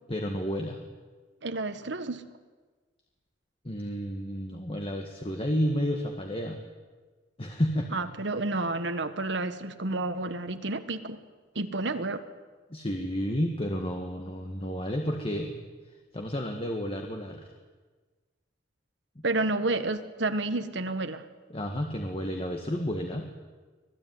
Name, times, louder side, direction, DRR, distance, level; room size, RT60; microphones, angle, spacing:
voice 1, 0.1-0.8 3.6-6.6 7.4-7.9 12.7-15.5 16.1-17.5 19.2-19.3 21.5-23.3, equal, 30° left, 3 dB, 1.8 m, -31 dB
voice 2, 1.4-2.3 7.9-11.2 11.5-12.2 19.2-21.2, right 2 dB, 65° right, 9 dB, 1.4 m, -30 dB
26.0 x 17.5 x 9.5 m, 1.4 s
head